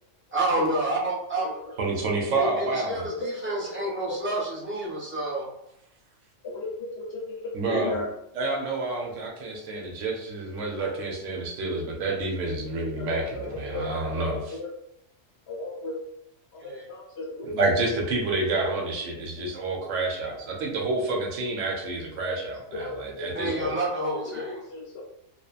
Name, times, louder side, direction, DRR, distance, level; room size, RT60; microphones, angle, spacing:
voice 1, 0.3-1.5 2.3-5.5 16.6-16.9 23.3-24.6, right 2 dB, 15° right, -6 dB, 0.6 m, -29 dB
voice 2, 1.8-3.0 7.5-7.9 8.4-14.6 17.4-23.7, right 2 dB, 85° right, 0 dB, 1.0 m, -29 dB
voice 3, 2.9-3.8 4.1-4.4 6.4-8.1 12.5-12.6 13.0-13.9 14.1-14.7 15.5-16.0 16.5-18.0 21.1-21.2 22.2-23.7 24.1-25.0, left 2 dB, 65° left, -1 dB, 0.8 m, -35 dB
2.8 x 2.2 x 2.3 m, 0.78 s
omnidirectional pair, 1.3 m